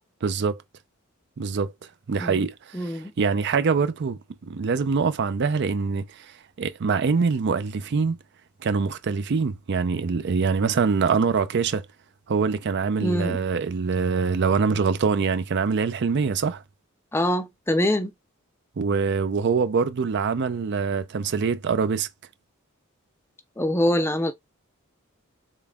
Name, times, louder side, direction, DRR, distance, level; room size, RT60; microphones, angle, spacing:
voice 1, 0.2-0.6 1.4-1.7 2.1-4.2 4.5-8.2 8.6-11.9 12.3-16.6 18.8-22.1, right 5 dB, 55° right, 0.4 m, -24 dB
voice 2, 2.7-3.1 13.0-13.4 17.1-18.1 23.6-24.3, left 1 dB, 10° left, 0.4 m, -24 dB
3.7 x 3.6 x 2.3 m
head